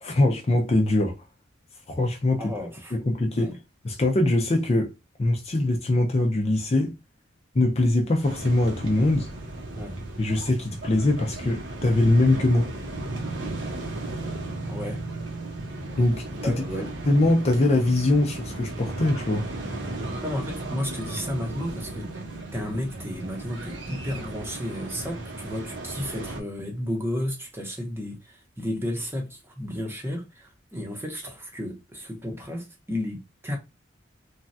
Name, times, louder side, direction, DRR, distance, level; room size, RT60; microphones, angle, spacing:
voice 1, 0.0-1.2 1.9-2.5 2.9-3.5 3.8-4.9 5.2-6.9 7.5-9.3 10.2-12.7 16.0-16.5 17.1-19.5, left 2 dB, 35° left, 0.5 m, -22 dB
voice 2, 2.4-3.0 3.3-3.6 9.8-10.0 14.7-15.0 16.4-16.9 20.2-22.1 22.5-33.6, left 1 dB, 15° right, 0.8 m, -32 dB
sound 1, 8.2-26.4, right 2 dB, 70° right, 0.9 m, -35 dB
3.1 x 2.3 x 2.6 m
head